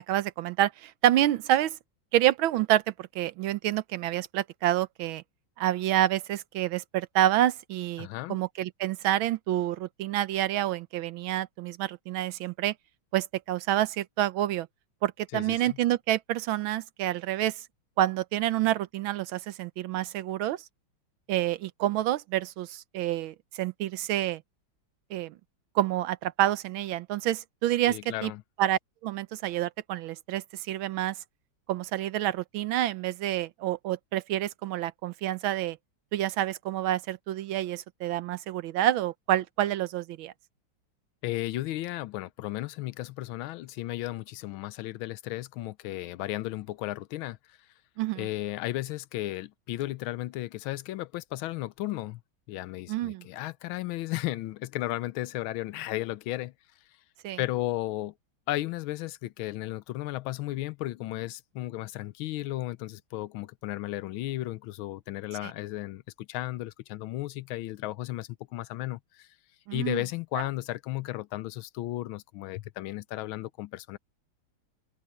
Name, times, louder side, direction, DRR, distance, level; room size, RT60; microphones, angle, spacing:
voice 1, 0.0-1.8 2.1-5.2 5.6-12.7 13.1-14.7 15.0-17.6 18.0-20.6 21.3-24.4 25.1-25.3 25.7-28.3 28.6-31.1 31.7-35.8 36.1-40.3 48.0-48.3 52.9-53.2 57.2-57.4 65.4-65.5 69.7-70.0, right 13 dB, 80° right, 1.5 m, -28 dB
voice 2, 8.0-8.4 15.3-15.8 27.9-28.4 41.2-47.4 48.2-52.2 52.5-56.5 57.4-58.1 58.5-69.3 69.7-74.0, left 16 dB, 85° left, 1.4 m, -34 dB
open air
omnidirectional pair, 2.2 m